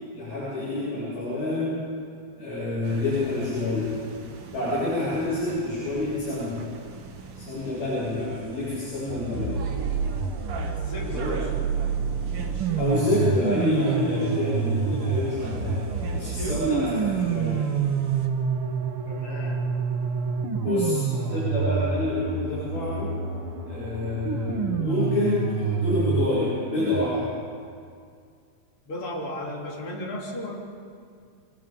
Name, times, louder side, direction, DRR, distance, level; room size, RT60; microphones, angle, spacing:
voice 1, 0.1-1.8 2.4-3.9 4.5-6.6 7.4-9.5 11.1-11.4 12.8-15.8 16.1-17.7 20.6-23.1 23.7-27.3, left 2 dB, 70° left, -10 dB, 9.9 m, -27 dB
sound 1, 2.8-18.3, right 3 dB, 50° right, 1.8 m, -41 dB
sound 2, 9.1-27.1, right 6 dB, 75° right, 1.2 m, -28 dB
voice 2, 10.7-11.5 19.1-19.6 28.9-30.5, left 1 dB, 35° left, -3 dB, 4.3 m, -35 dB
26.0 x 22.5 x 5.4 m, 2.2 s
omnidirectional pair, 4.5 m